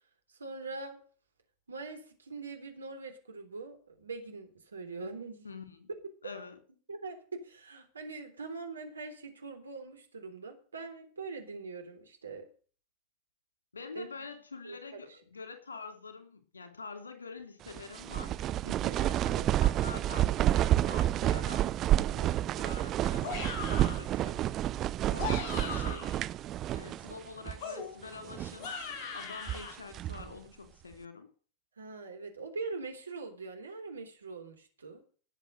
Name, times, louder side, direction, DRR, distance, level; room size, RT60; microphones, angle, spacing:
voice 1, 0.3-1.0 1.7-5.5 6.9-12.5 13.9-14.1 14.6-15.1 18.6-19.0 31.8-35.0, right 3 dB, 75° right, 5 dB, 3.6 m, -43 dB
voice 2, 5.4-5.9 6.2-6.6 13.7-18.4 18.9-21.7 22.6-24.5 25.1-26.1 26.7-28.8 29.1-31.3, left 4 dB, 75° left, 8 dB, 3.1 m, -46 dB
sound 1, 17.7-27.2 27.5-27.6 28.2-28.7 29.2-30.3, right 13 dB, 30° right, 0.6 m, -29 dB
sound 2, 23.2-24.1 25.0-26.2 27.6-29.7, left 5 dB, 45° left, 4.5 m, -39 dB
18.5 x 7.5 x 6.5 m, 0.41 s
figure-of-eight pair, 90°, 0 cm